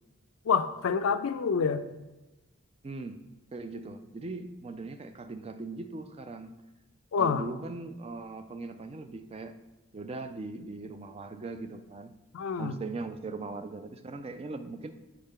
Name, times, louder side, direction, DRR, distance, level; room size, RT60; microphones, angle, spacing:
voice 1, 0.5-1.8 7.1-7.4 12.3-12.8, left 6 dB, 75° left, 10 dB, 0.4 m, -27 dB
voice 2, 2.8-3.2 3.5-6.6 7.2-9.6 9.9-12.1 12.6-14.9, right 3 dB, 30° right, 9 dB, 0.3 m, -39 dB
6.6 x 4.8 x 3.7 m, 1.1 s
head